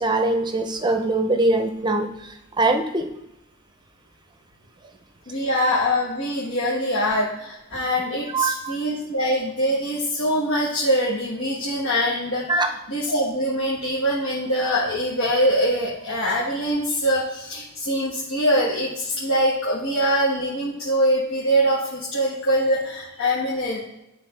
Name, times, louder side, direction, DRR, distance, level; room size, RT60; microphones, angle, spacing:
voice 1, 0.0-2.1 2.6-3.1 8.3-8.7 12.5-12.7, right 2 dB, 20° right, 5 dB, 0.6 m, -22 dB
voice 2, 5.3-12.6 12.9-23.8, equal, 70° left, -6 dB, 1.4 m, -23 dB
11.0 x 3.6 x 3.3 m, 0.88 s
head